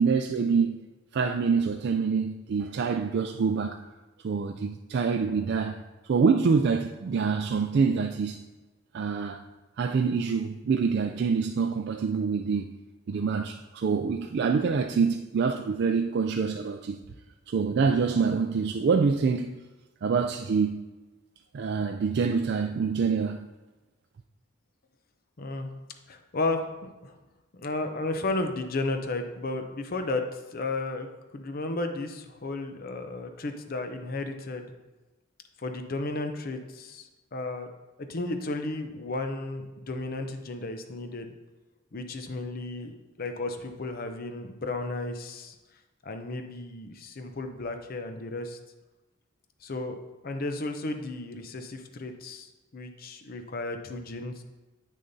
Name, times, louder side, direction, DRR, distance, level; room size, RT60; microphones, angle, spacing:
voice 1, 0.0-3.8 4.2-5.8 6.1-8.4 8.9-9.4 9.8-12.7 13.1-17.0 17.5-19.5 20.0-20.8 21.5-23.4, right 5 dB, 55° right, 0.3 m, -26 dB
voice 2, 25.4-25.7 26.1-26.7 27.0-27.2 27.5-34.7 35.6-37.7 38.0-41.3 41.9-45.6 46.0-48.6 49.6-54.4, left 2 dB, 45° left, 0.6 m, -33 dB
8.4 x 6.5 x 2.7 m
head